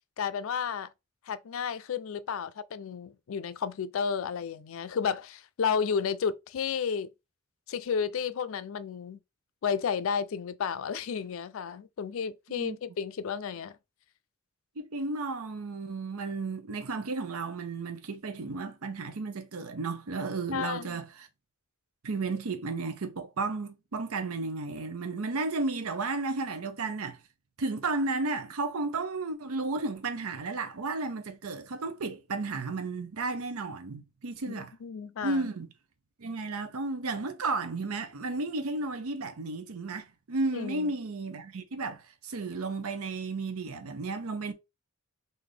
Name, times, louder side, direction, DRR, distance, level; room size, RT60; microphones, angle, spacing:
voice 1, 0.2-0.9 1.3-7.1 7.7-9.2 9.6-13.8 20.5-21.0 34.5-35.5 40.5-40.9, left 6 dB, 70° left, 0.4 m, -32 dB
voice 2, 14.8-21.3 22.0-27.2 27.6-34.7 35.2-35.7 36.2-44.5, right 3 dB, 90° right, 0.7 m, -33 dB
3.9 x 2.6 x 3.2 m
head